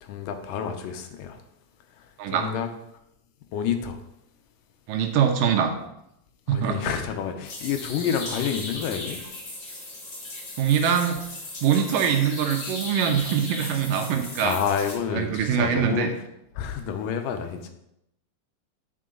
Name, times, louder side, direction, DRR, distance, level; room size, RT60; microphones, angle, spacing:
voice 1, 0.0-1.4 2.3-2.7 3.5-4.0 6.5-9.2 14.4-16.1 16.6-17.7, left 8 dB, 80° left, 6 dB, 2.5 m, -29 dB
voice 2, 4.9-5.7 6.5-6.8 10.6-11.2 11.6-14.6 15.1-16.1, right 8 dB, 85° right, 4 dB, 2.6 m, -23 dB
sound 1, 7.4-15.0, left 2 dB, 45° left, 3.5 m, -37 dB
9.6 x 5.6 x 3.8 m, 0.80 s
omnidirectional pair, 3.8 m